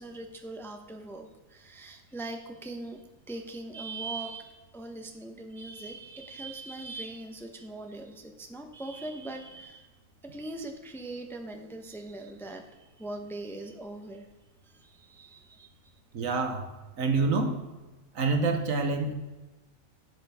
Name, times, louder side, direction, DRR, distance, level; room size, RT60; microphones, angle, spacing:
voice 1, 0.0-9.9 10.2-14.3 14.6-15.7, right 2 dB, ahead, 4 dB, 0.8 m, -41 dB
voice 2, 16.1-16.7 17.0-17.6 18.1-19.1, right 3 dB, 75° right, 6 dB, 1.6 m, -27 dB
11.0 x 8.3 x 3.5 m, 1.1 s
omnidirectional pair, 1.4 m